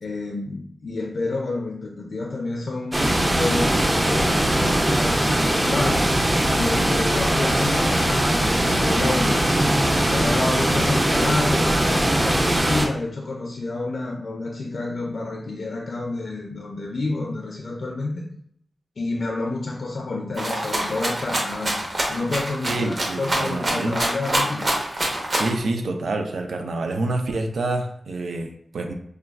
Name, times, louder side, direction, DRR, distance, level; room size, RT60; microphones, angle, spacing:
voice 1, 0.0-6.2 6.5-9.5 10.1-18.3 19.0-24.8, left 2 dB, 55° left, 1 dB, 0.4 m, -29 dB
sound 1, 2.9-12.9, right 1 dB, 20° right, 0.4 m, -20 dB
Rattle (instrument), 20.4-25.6, right 1 dB, 40° right, 0.9 m, -25 dB
voice 2, 22.7-24.0 25.3-28.9, right 2 dB, 85° right, 4 dB, 0.4 m, -27 dB
4.9 x 2.2 x 2.3 m, 0.68 s
wide cardioid pair, 135°, 0 cm